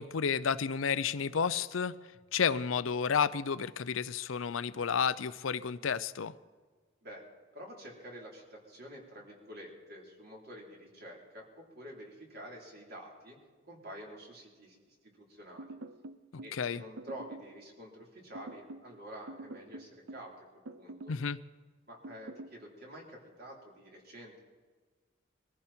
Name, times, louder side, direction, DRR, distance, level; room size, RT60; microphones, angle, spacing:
voice 1, 0.0-1.9 2.3-6.3 16.5-16.8 21.1-21.4, left 6 dB, 85° left, 0.6 m, -31 dB
voice 2, 7.5-13.4 13.6-15.7 16.4-20.5 20.7-21.1 21.9-24.4, equal, 50° right, 3.9 m, -49 dB
sound 1, 15.6-16.6 17.0-17.5 18.3-18.9 19.3-20.3 20.6-21.2 22.0-22.6, right 2 dB, 80° right, 0.7 m, -46 dB
22.0 x 14.5 x 4.4 m
head